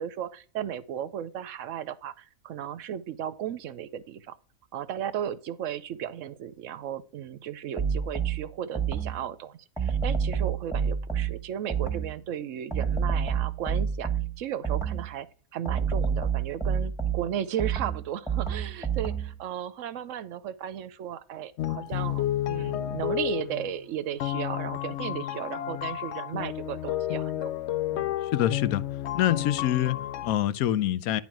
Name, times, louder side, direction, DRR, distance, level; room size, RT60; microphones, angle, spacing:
voice 1, 0.0-4.4 4.7-27.6 27.9-28.1, right 10 dB, 65° right, 0.9 m, -35 dB
sound 1, 7.8-9.3 9.8-12.2 12.7-15.2 15.6-19.4, right 7 dB, ahead, 1.0 m, -29 dB
sound 2, 21.6-23.8 24.2-30.3, left 12 dB, 65° left, 0.7 m, -31 dB
voice 2, 28.3-28.8 29.1-31.2, left 12 dB, 80° left, 1.1 m, -25 dB
10.5 x 3.8 x 5.9 m
omnidirectional pair, 1.5 m